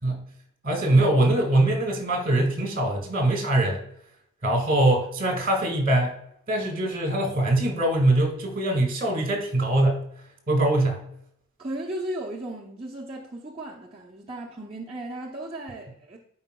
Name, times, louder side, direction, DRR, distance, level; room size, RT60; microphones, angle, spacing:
voice 1, 0.6-3.9 4.4-6.2 6.5-10.0 10.5-11.1, right 1 dB, 40° right, 1.7 m, -22 dB
voice 2, 11.6-16.2, right 1 dB, 25° right, 0.6 m, -35 dB
10.5 x 4.5 x 2.2 m
head